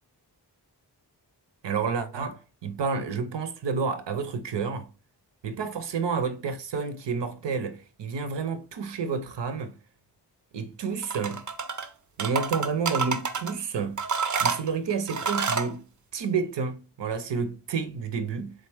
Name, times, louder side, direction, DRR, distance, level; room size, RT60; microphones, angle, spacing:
voice 1, 1.6-4.9 5.4-9.7 10.5-11.4 12.2-14.0 14.4-15.9 16.1-18.5, right 5 dB, 80° right, 0.7 m, -30 dB
sound 1, 11.0-11.9 12.2-13.5 14.0-15.7, right 5 dB, 45° right, 0.5 m, -28 dB
3.8 x 3.3 x 3.4 m
wide cardioid pair, 80°, 42 cm